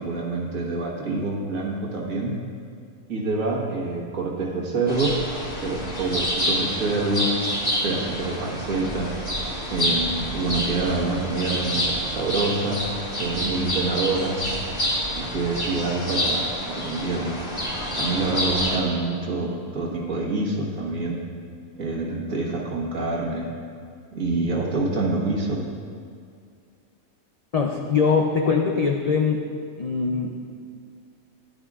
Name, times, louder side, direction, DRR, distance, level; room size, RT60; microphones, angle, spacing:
voice 1, 0.0-2.4 3.1-5.2 5.6-7.4 7.8-9.1 9.7-12.9 13.2-14.4 15.2-16.5 16.7-17.4 17.9-21.2 21.8-23.5 24.1-25.6, right 3 dB, 70° right, -3 dB, 1.9 m, -26 dB
sound 1, 4.9-18.8, equal, 25° left, 2.0 m, -28 dB
voice 2, 27.5-29.5 29.8-30.4, left 5 dB, 65° left, 1 dB, 0.3 m, -22 dB
13.0 x 11.0 x 2.4 m, 2.2 s
omnidirectional pair, 1.5 m